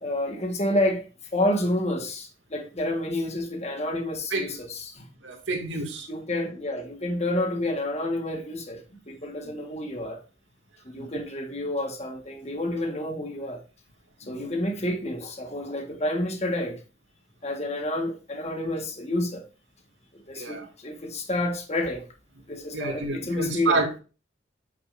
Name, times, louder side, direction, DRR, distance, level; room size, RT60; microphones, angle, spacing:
voice 1, 0.0-1.1 1.3-5.1 6.1-10.2 10.8-13.6 14.2-16.8 17.4-19.5 20.1-22.1 22.5-23.8, left 1 dB, 35° left, 1.5 m, -29 dB
voice 2, 5.2-6.1 10.9-11.1 14.2-14.5 20.3-20.6 22.7-24.0, right 3 dB, 90° right, 2.3 m, -29 dB
8.5 x 6.6 x 2.6 m
head